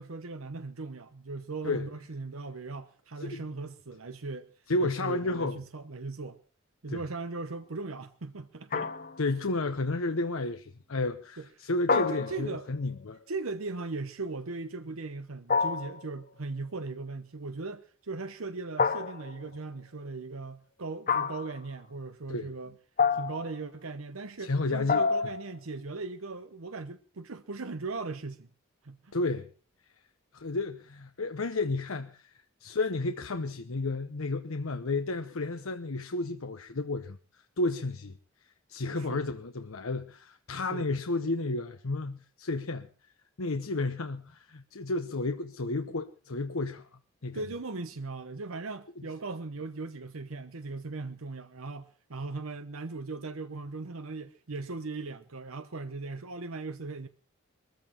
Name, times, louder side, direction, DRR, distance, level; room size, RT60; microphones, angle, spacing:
voice 1, 0.0-4.5 4.8-6.4 6.8-8.9 11.4-11.5 11.9-12.7 13.3-22.7 23.1-28.5 28.8-29.1 38.9-39.2 40.7-40.9 47.3-57.1, right 3 dB, 80° right, 0.9 m, -38 dB
voice 2, 4.7-5.6 6.9-7.0 9.2-13.2 22.3-22.5 24.4-25.0 29.1-29.5 30.3-38.1 38.7-42.9 43.4-46.8 47.2-47.4, left 2 dB, 75° left, 0.9 m, -32 dB
sound 1, 8.7-9.4 11.9-12.8 15.5-16.1 18.8-19.5 21.1-21.6 23.0-23.6 24.9-25.5, left 5 dB, 40° left, 0.8 m, -28 dB
22.0 x 14.5 x 4.4 m
head